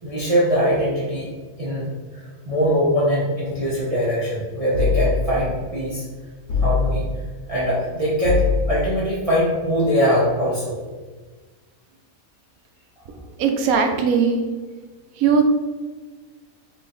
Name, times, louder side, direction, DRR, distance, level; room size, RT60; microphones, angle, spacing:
voice 1, 0.0-1.3 1.6-6.0 6.6-7.1 7.5-10.8, equal, 30° right, -8 dB, 0.8 m, -22 dB
sound 1, 4.7-5.5 6.5-7.2 8.2-9.0, left 5 dB, 75° left, 1.6 m, -22 dB
voice 2, 13.1-14.4 15.1-15.4, right 6 dB, 80° right, 4 dB, 1.1 m, -20 dB
3.8 x 3.4 x 4.1 m, 1.3 s
omnidirectional pair, 1.5 m